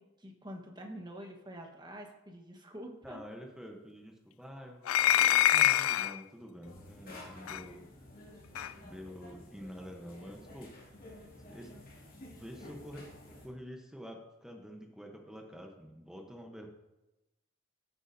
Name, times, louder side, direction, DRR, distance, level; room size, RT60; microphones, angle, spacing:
voice 1, 0.0-3.2, equal, 20° right, 2 dB, 1.3 m, -46 dB
voice 2, 3.0-7.8 8.8-10.7 11.5-11.7 12.3-13.1 13.4-16.7, equal, 5° right, 2 dB, 0.9 m, -47 dB
sound 1, 4.9-6.2 7.5-7.6 8.6-8.7, left 12 dB, 90° left, 0.3 m, -25 dB
sound 2, 6.6-13.5, left 1 dB, 45° left, 2.5 m, -52 dB
14.5 x 8.3 x 2.7 m, 0.97 s
head